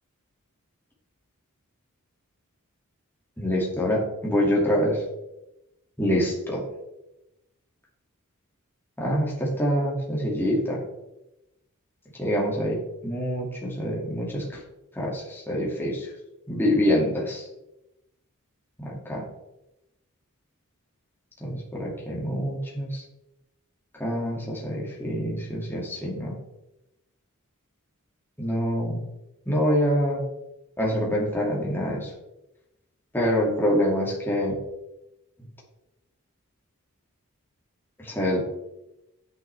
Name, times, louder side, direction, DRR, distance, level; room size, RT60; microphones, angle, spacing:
voice 1, 3.4-5.0 6.0-6.6 9.0-10.8 12.2-14.5 15.0-16.1 16.5-17.5 18.8-19.2 21.4-23.0 24.0-26.3 28.4-29.0 29.5-30.2 30.8-32.1 33.1-34.5 38.0-38.4, equal, 10° left, -3 dB, 2.4 m, -25 dB
10.0 x 9.1 x 3.4 m, 0.92 s
head